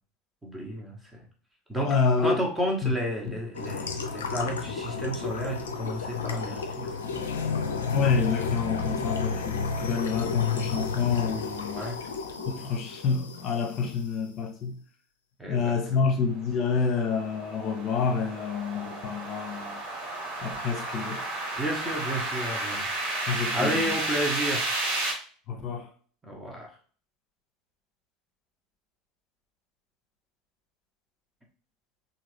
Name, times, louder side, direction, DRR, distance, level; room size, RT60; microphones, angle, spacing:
voice 1, 0.4-1.2 1.7-1.9 2.2-6.9 11.7-12.0 15.4-16.0 21.6-22.9 23.5-24.7 26.2-26.7, equal, 10° right, 1.2 m, -32 dB
voice 2, 1.8-2.4 2.8-2.9 3.2-3.4 7.9-11.8 12.4-14.8 15.5-19.8 20.4-21.2 23.3-23.9 25.5-25.9, left 5 dB, 40° left, 1.0 m, -28 dB
sound 1, 3.5-14.0, left 5 dB, 75° left, 0.5 m, -32 dB
sound 2, 16.0-25.1, right 2 dB, 60° right, 1.2 m, -32 dB
3.8 x 2.7 x 3.3 m
figure-of-eight pair, 75°, 0 cm